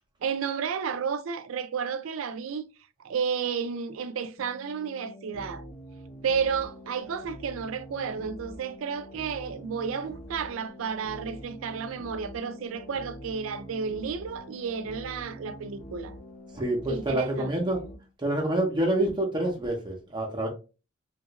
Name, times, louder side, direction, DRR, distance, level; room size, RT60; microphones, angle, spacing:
voice 1, 0.2-2.6 3.0-5.6 6.2-16.2 16.9-17.5, right 6 dB, 80° right, 0.4 m, -32 dB
sound 1, 4.4-18.0, equal, 40° left, 0.7 m, -45 dB
voice 2, 16.5-17.8 18.2-20.5, right 1 dB, 20° right, 0.6 m, -27 dB
3.2 x 2.4 x 2.8 m
head